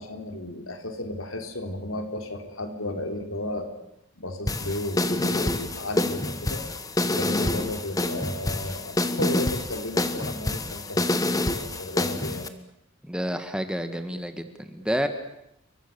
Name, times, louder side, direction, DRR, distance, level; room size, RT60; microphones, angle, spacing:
voice 1, 0.0-3.7 4.2-6.6 7.1-12.5, left 1 dB, 80° left, 5 dB, 3.8 m, -34 dB
sound 1, 4.5-12.5, left 1 dB, 15° left, 1.4 m, -27 dB
voice 2, 13.0-15.1, equal, 5° right, 8 dB, 1.7 m, -29 dB
29.0 x 24.0 x 6.9 m, 0.80 s
head